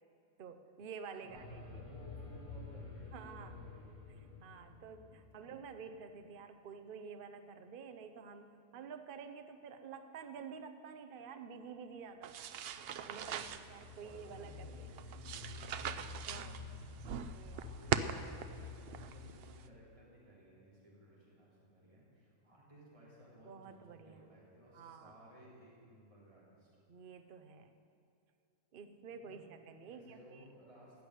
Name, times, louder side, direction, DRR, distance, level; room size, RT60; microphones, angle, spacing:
voice 1, 0.4-1.8 3.1-3.6 4.1-12.5 13.1-14.9 16.3-16.6 17.3-17.6 23.4-24.3 24.7-25.2 26.9-27.7 28.7-30.5, right 6 dB, 45° right, 8 dB, 0.8 m, -50 dB
voice 2, 1.2-3.9 5.1-5.6 12.9-13.0 14.0-16.0 16.2-26.7 29.1-29.4 29.9-31.0, right 1 dB, 20° right, -7 dB, 3.5 m, -59 dB
sound 1, 1.3-6.3 12.3-19.4, left 4 dB, 45° left, 4.7 m, -50 dB
sound 2, 12.2-19.7, right 8 dB, 70° right, 0.5 m, -42 dB
15.5 x 6.8 x 9.9 m, 2.4 s
omnidirectional pair, 1.6 m